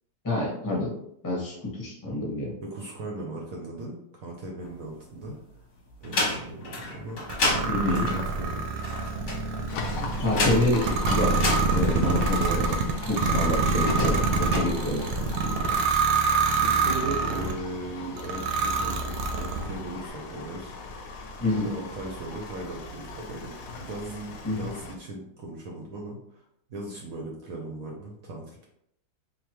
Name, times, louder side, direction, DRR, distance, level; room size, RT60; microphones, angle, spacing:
voice 1, 0.2-0.9 1.2-2.5 7.7-8.1 9.9-11.3 11.7-15.1 21.4-21.7 24.4-24.6, left 1 dB, 15° left, -4 dB, 0.8 m, -28 dB
voice 2, 2.6-5.3 6.0-7.2 8.0-9.1 16.6-20.7 21.5-26.4 26.7-28.7, right 2 dB, 65° right, -1 dB, 0.9 m, -38 dB
sound 1, 4.6-5.5 5.9-13.0 13.7-14.6, left 2 dB, 50° left, 1.0 m, -31 dB
sound 2, 7.3-17.6 18.2-19.8, right 4 dB, 90° right, 1.4 m, -26 dB
Livestock farm animals working animals, 9.7-25.0, left 4 dB, 80° left, 0.7 m, -39 dB
4.2 x 2.8 x 3.0 m, 0.76 s
omnidirectional pair, 2.1 m